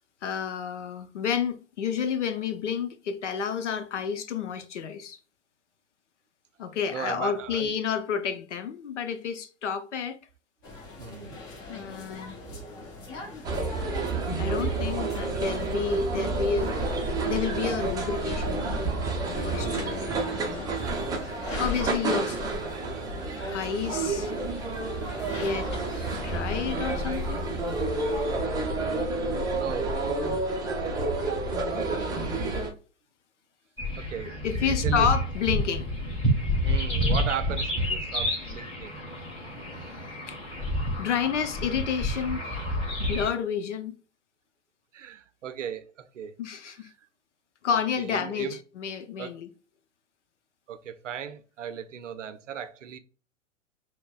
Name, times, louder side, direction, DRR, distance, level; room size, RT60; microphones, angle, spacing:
voice 1, 0.2-5.2 6.6-10.2 11.7-12.4 14.4-16.8 17.0-18.8 19.2-20.7 21.2-22.4 23.5-24.3 25.3-25.8 26.1-27.4 31.5-31.8 34.4-35.9 39.8-40.0 40.3-40.4 41.0-42.7 43.0-43.9 46.4-46.9 47.6-49.5, left 7 dB, 65° left, 0.7 m, -30 dB
voice 2, 6.9-7.7 11.0-11.3 29.5-29.9 34.0-34.3 34.6-35.1 36.6-39.0 44.9-46.3 47.7-48.6 49.2-49.3 50.7-53.0, right 8 dB, 70° right, 0.6 m, -37 dB
sound 1, 10.6-28.4, left 4 dB, 30° left, 1.1 m, -41 dB
sound 2, 13.4-32.7, right 3 dB, 10° right, 0.5 m, -30 dB
sound 3, 33.8-43.3, equal, 15° left, 1.4 m, -29 dB
5.9 x 2.2 x 2.4 m
figure-of-eight pair, 100°, 38 cm